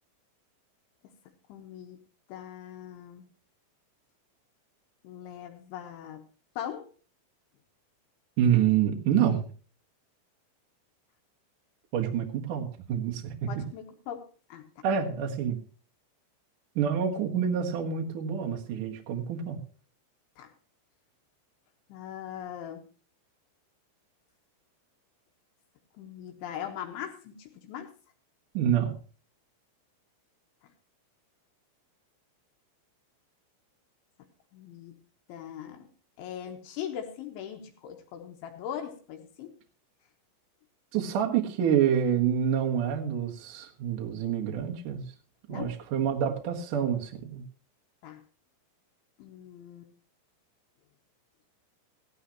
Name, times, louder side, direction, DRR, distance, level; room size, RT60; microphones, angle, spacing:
voice 1, 1.5-2.0 2.3-3.2 5.0-6.3 6.6-6.9 13.5-14.2 14.5-14.8 20.4-20.5 21.9-22.9 26.0-27.9 34.5-35.0 35.3-35.9 36.2-39.6 45.5-45.7 48.0-48.2 49.2-49.9, left 9 dB, 75° left, 4 dB, 3.3 m, -40 dB
voice 2, 8.4-9.4 11.9-13.5 14.8-15.6 16.8-19.6 28.5-29.0 40.9-45.0 45.5-47.4, right 8 dB, 70° right, 1 dB, 2.0 m, -27 dB
16.5 x 12.5 x 2.9 m, 0.39 s
omnidirectional pair, 6.0 m